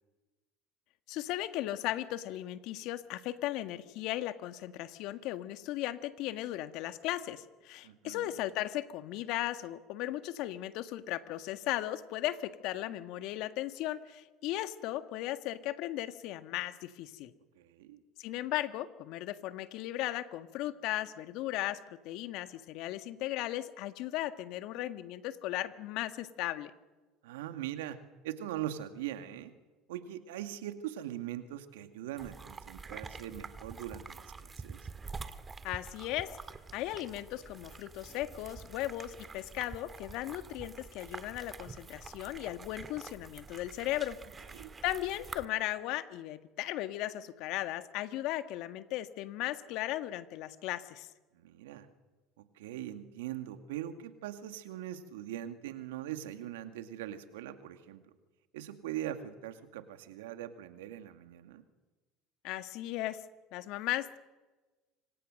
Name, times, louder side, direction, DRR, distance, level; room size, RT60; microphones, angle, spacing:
voice 1, 1.1-17.3 18.2-26.7 35.6-36.4 36.7-44.2 44.8-51.1 62.4-63.2 63.5-64.2, left 14 dB, 65° left, 10 dB, 1.6 m, -36 dB
voice 2, 7.8-8.3 17.6-18.0 27.2-28.0 28.2-29.5 29.9-34.8 44.5-44.7 51.3-51.9 52.6-58.0 58.5-61.6, right 12 dB, 80° right, 8 dB, 2.1 m, -41 dB
sound 1, 32.2-45.5, right 4 dB, 25° right, 1.9 m, -47 dB
26.5 x 25.5 x 6.6 m, 1.2 s
hypercardioid pair, 70°, 0 cm